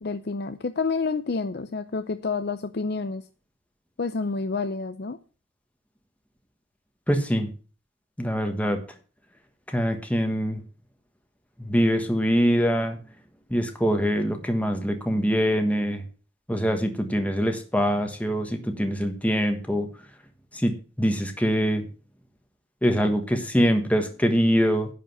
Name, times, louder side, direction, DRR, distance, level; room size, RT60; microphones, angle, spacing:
voice 1, 0.0-3.2 4.0-5.2, left 4 dB, 55° left, 0.5 m, -29 dB
voice 2, 7.1-7.5 8.2-8.8 9.7-10.6 11.6-13.0 13.5-16.0 16.5-19.9 20.5-21.8 22.8-24.9, equal, 5° left, 1.3 m, -24 dB
11.0 x 5.1 x 7.8 m
head